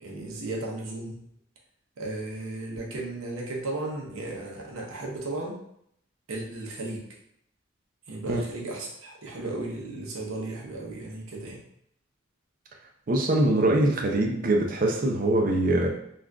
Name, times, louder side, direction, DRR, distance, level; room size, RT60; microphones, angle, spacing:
voice 1, 0.0-1.2 2.0-5.6 6.3-7.0 8.1-11.6, right 2 dB, 90° right, -2 dB, 0.7 m, -35 dB
voice 2, 13.1-15.9, right 1 dB, 40° right, 1 dB, 0.5 m, -23 dB
3.6 x 2.4 x 2.3 m, 0.71 s
head